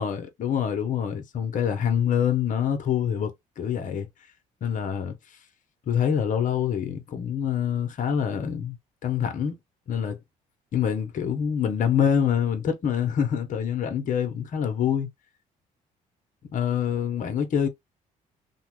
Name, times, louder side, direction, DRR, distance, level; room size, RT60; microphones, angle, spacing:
voice 1, 0.0-4.1 4.6-5.2 5.9-8.8 9.0-9.5 9.9-10.2 10.7-15.1 16.5-17.7, left 8 dB, 55° left, 0.8 m, -25 dB
2.8 x 2.1 x 2.9 m
supercardioid pair, 70°, 16 cm